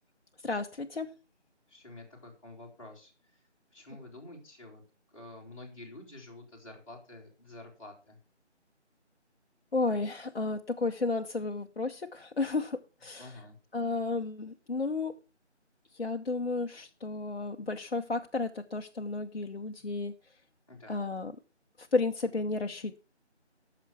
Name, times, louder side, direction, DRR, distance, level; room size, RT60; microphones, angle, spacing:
voice 1, 0.4-1.1 9.7-13.4 13.7-15.1 15.9-20.1 20.9-21.3 21.8-23.0, left 3 dB, 60° left, 5 dB, 0.8 m, -32 dB
voice 2, 1.7-3.1 3.7-4.8 5.1-8.2 13.2-13.6 20.7-21.0, left 2 dB, 30° left, -3 dB, 3.1 m, -49 dB
14.0 x 6.0 x 5.8 m, 0.33 s
figure-of-eight pair, 170°, 35 cm